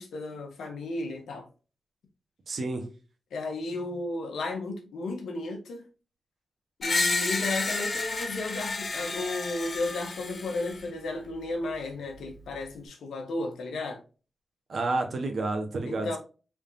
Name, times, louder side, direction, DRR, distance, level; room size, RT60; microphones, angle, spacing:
voice 1, 0.0-1.4 3.3-5.9 6.8-14.0 15.9-16.2, left 2 dB, 90° left, 1.0 m, -34 dB
voice 2, 2.5-2.8 14.7-16.2, right 3 dB, 65° right, 1.0 m, -30 dB
Screech, 6.8-10.8, left 3 dB, 50° left, 0.8 m, -31 dB
3.5 x 3.5 x 2.6 m
cardioid pair, 50°, 0 cm